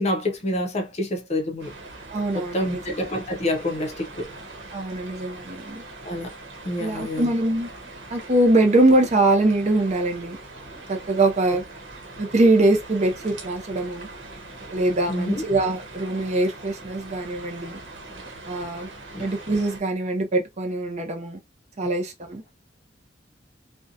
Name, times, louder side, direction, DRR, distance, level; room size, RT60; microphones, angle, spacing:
voice 1, 0.0-1.7 2.3-4.3 6.0-6.4 6.6-7.3 11.5-11.6 15.1-15.4 19.1-19.3 21.8-21.9, left 1 dB, 35° left, 0.6 m, -27 dB
sound 1, 1.6-19.8, right 2 dB, 80° right, 0.9 m, -42 dB
voice 2, 2.1-2.8 4.7-5.8 6.8-7.7 8.1-10.4 10.9-11.6 12.2-14.1 14.7-17.8 18.5-18.9 19.2-21.4 21.8-22.4, right 2 dB, 40° right, 0.6 m, -22 dB
2.6 x 2.1 x 2.6 m
head